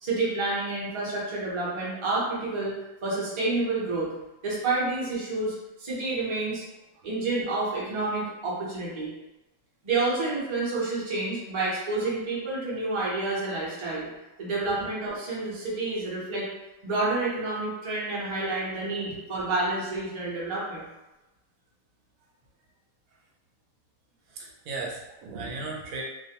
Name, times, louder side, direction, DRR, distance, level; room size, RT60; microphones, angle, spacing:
voice 1, 0.0-2.7 3.0-4.1 4.4-6.6 7.0-9.1 9.8-14.1 14.4-16.5 16.8-20.9, right 2 dB, 30° right, -7 dB, 0.6 m, -29 dB
voice 2, 24.3-26.0, right 3 dB, 85° right, -2 dB, 1.0 m, -36 dB
2.5 x 2.0 x 2.8 m, 1.0 s
omnidirectional pair, 1.5 m